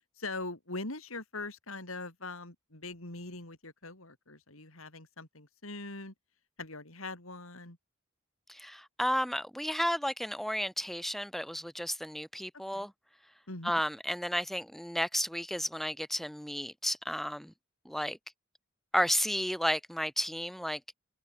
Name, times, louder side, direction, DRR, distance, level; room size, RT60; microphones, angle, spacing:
voice 1, 0.2-6.1 6.6-7.8 12.7-12.9 13.5-13.8, left 2 dB, 80° left, 6.1 m, -42 dB
voice 2, 8.5-12.9 13.6-17.5 17.8-18.2 18.9-20.8, equal, ahead, 1.0 m, -32 dB
head